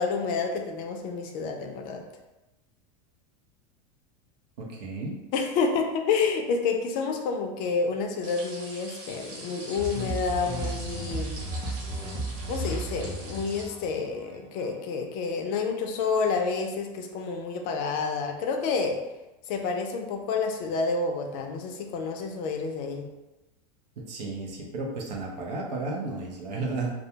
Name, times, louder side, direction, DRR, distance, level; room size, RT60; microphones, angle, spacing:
voice 1, 0.0-2.1 5.3-11.4 12.5-19.0 19.5-23.1, left 4 dB, 45° left, 4 dB, 0.4 m, -29 dB
voice 2, 4.6-5.2 24.0-26.9, right 3 dB, 90° right, -1 dB, 0.7 m, -33 dB
sound 1, 8.2-13.6, right 2 dB, 40° right, 0.9 m, -44 dB
sound 2, 9.8-14.7, right 1 dB, 20° right, 0.6 m, -34 dB
2.3 x 2.1 x 2.7 m, 1.0 s
supercardioid pair, 130°, 21 cm